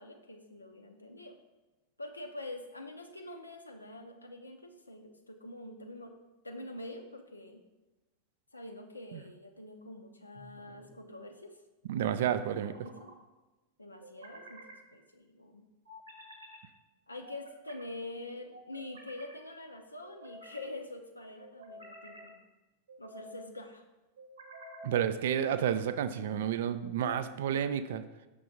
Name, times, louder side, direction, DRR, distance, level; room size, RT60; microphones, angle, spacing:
voice 1, 0.0-1.4 2.0-6.1 6.4-7.6 8.5-11.6 12.2-13.1 13.8-15.7 17.1-22.4 23.0-23.8, left 2 dB, 80° left, 4 dB, 0.4 m, -45 dB
sound 1, 10.3-11.0 12.4-13.2 14.0-14.8 15.9-16.6 17.2-17.9 18.5-19.4 20.0-20.7 21.4-22.3 22.9-23.4 24.2-25.0, equal, 70° right, 1.2 m, -51 dB
voice 2, 11.9-12.7 24.8-28.0, right 9 dB, 55° right, 11 dB, 0.3 m, -30 dB
5.9 x 3.3 x 5.0 m, 1.1 s
figure-of-eight pair, 90°, 0 cm